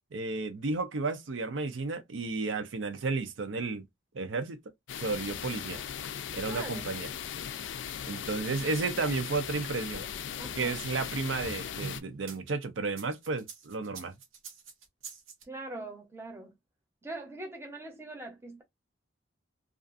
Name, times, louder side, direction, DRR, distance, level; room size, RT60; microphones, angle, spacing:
voice 1, 0.1-3.8 4.1-4.6 5.0-5.8 6.3-7.1 8.1-10.0 10.5-14.1, right 3 dB, 70° right, 0.5 m, -32 dB
sound 1, 4.9-12.0, left 8 dB, 65° left, 0.3 m, -38 dB
voice 2, 6.5-6.9 10.4-10.8 15.5-16.5 17.0-18.6, right 2 dB, 15° right, 0.7 m, -42 dB
sound 2, 9.1-12.4 12.9-15.4, right 4 dB, 85° right, 0.8 m, -46 dB
2.4 x 2.4 x 2.4 m
head